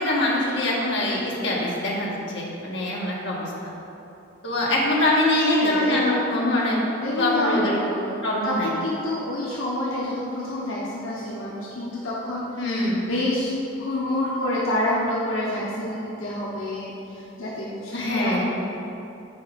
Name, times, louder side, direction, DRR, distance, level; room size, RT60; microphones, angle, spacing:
voice 1, 0.0-3.5 4.4-6.8 7.2-7.8 8.2-8.7 12.6-13.0 17.9-18.4, left 1 dB, 60° left, -5 dB, 1.4 m, -23 dB
voice 2, 5.4-6.3 7.0-8.2 8.4-12.6 13.0-18.4, left 1 dB, 80° left, -6 dB, 1.0 m, -28 dB
6.9 x 4.6 x 5.1 m, 2.8 s
head